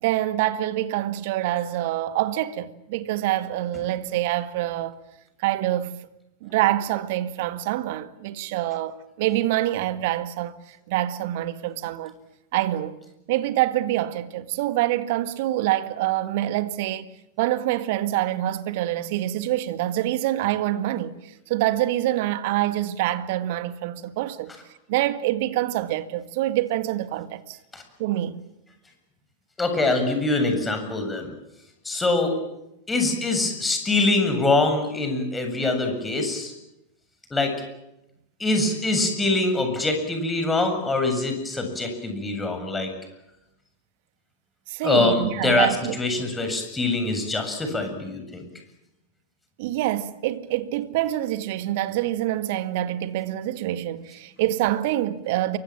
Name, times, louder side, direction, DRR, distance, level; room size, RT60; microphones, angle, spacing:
voice 1, 0.0-5.0 5.4-6.0 6.4-12.2 12.5-13.0 13.3-17.1 17.4-21.2 21.5-24.5 24.9-27.6 28.0-28.4 44.7-46.0 49.6-55.6, right 14 dB, 50° right, 1.8 m, -26 dB
voice 2, 29.6-31.3 31.8-32.3 32.9-36.5 37.3-37.5 38.4-42.9 44.8-45.7 46.0-48.4, left 2 dB, 10° left, 7.6 m, -24 dB
28.5 x 24.5 x 7.6 m
figure-of-eight pair, 90°, 0 cm